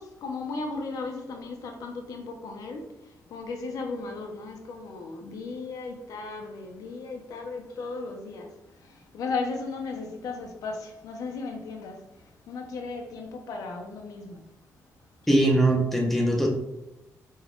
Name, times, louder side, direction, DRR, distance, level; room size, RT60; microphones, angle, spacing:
voice 1, 0.0-8.5 8.8-14.4, left 3 dB, 85° left, 3 dB, 0.8 m, -36 dB
voice 2, 15.3-16.5, right 1 dB, 5° left, 0 dB, 1.0 m, -21 dB
5.1 x 4.0 x 2.4 m, 0.93 s
cardioid pair, 105°, 6 cm